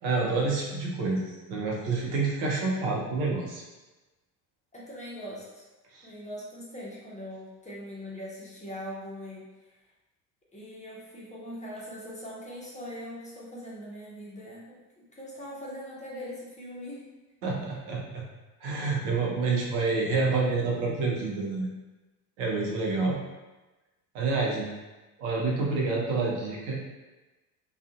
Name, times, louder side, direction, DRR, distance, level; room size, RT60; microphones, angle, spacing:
voice 1, 0.0-3.6 5.9-6.1 17.4-18.2 18.6-21.7 22.4-23.2 24.1-24.7 25.2-26.8, right 3 dB, 60° right, -3 dB, 0.8 m, -28 dB
voice 2, 4.7-5.6 6.0-9.5 10.5-17.0, equal, 15° left, -6 dB, 0.6 m, -41 dB
2.4 x 2.3 x 2.4 m, 1.1 s
figure-of-eight pair, 60°, 48 cm